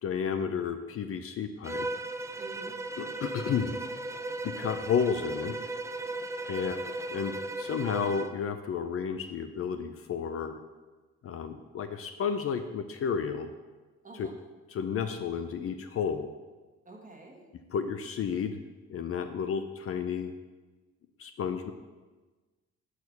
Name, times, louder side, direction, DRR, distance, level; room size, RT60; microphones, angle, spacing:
voice 1, 0.0-1.9 3.0-3.8 4.4-5.6 6.5-6.8 7.1-10.6 11.2-13.5 14.2-14.3 14.7-16.3 17.7-18.6 18.9-20.3 21.2-21.7, left 7 dB, 50° left, 9 dB, 0.5 m, -32 dB
Bowed string instrument, 1.6-8.4, right 2 dB, 10° right, 0.3 m, -36 dB
voice 2, 2.4-2.8 6.5-6.9 14.0-14.4 16.8-17.5, right 3 dB, 25° right, 0 dB, 1.5 m, -48 dB
6.2 x 4.7 x 5.4 m, 1.3 s
cardioid pair, 90°, 30 cm